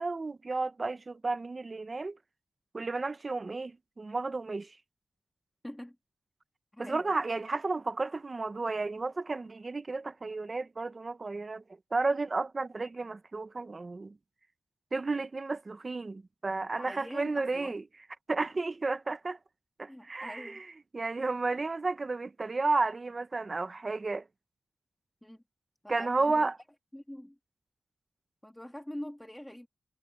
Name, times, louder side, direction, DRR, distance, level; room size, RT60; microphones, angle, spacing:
voice 1, 0.0-2.2 2.7-4.8 6.8-11.6 11.9-14.2 14.9-17.8 18.3-19.4 19.8-20.7 20.9-24.3 25.9-26.6, right 3 dB, 35° right, 1.1 m, -32 dB
voice 2, 5.6-6.0 6.7-7.1 16.7-17.8 19.9-20.6 25.2-25.4 25.8-26.5 26.9-27.4 28.4-29.7, left 1 dB, 5° left, 1.9 m, -44 dB
wide cardioid pair, 115°, 0 cm